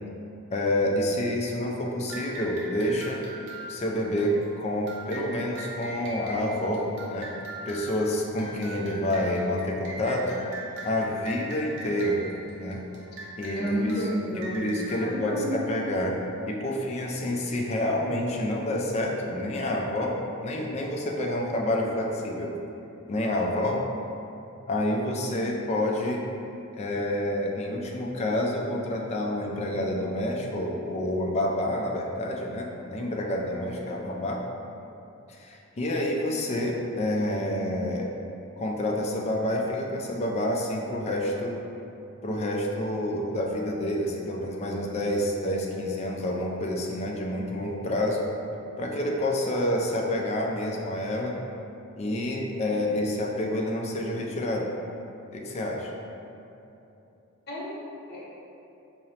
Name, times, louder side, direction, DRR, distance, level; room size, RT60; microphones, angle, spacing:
voice 1, 0.5-3.2 3.6-7.3 7.7-10.4 10.8-12.2 12.6-12.8 13.4-13.9 14.5-16.2 16.5-20.1 20.4-22.5 23.1-23.8 24.7-26.2 26.8-34.4 35.3-38.1 38.6-41.6 42.2-48.2 48.8-51.4 52.0-54.7 55.3-55.9, left 1 dB, 30° left, -1 dB, 0.3 m, -28 dB
sound 1, 2.1-16.2, right 1 dB, 55° right, 0.7 m, -41 dB
voice 2, 13.6-14.5 15.0-15.6 57.5-58.3, equal, 50° left, -6 dB, 0.8 m, -31 dB
4.8 x 2.0 x 2.8 m, 2.8 s
head